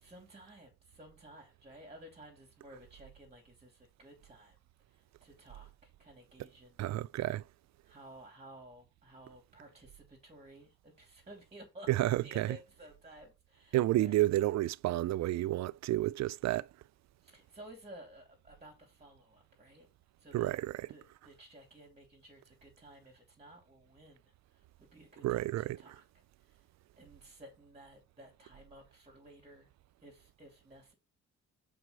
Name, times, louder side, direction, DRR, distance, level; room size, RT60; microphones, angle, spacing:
voice 1, 0.0-4.6 4.9-6.8 7.8-14.2 17.2-19.9 20.2-20.5 20.9-24.2 24.5-26.0 26.4-26.6 27.0-29.7 30.0-30.9, right 1 dB, 20° right, 3.0 m, -55 dB
voice 2, 6.8-7.4 11.9-12.6 13.7-16.7 20.3-20.9 25.2-25.8, right 15 dB, 65° right, 0.4 m, -30 dB
6.1 x 4.9 x 5.2 m
cardioid pair, 90°, 30 cm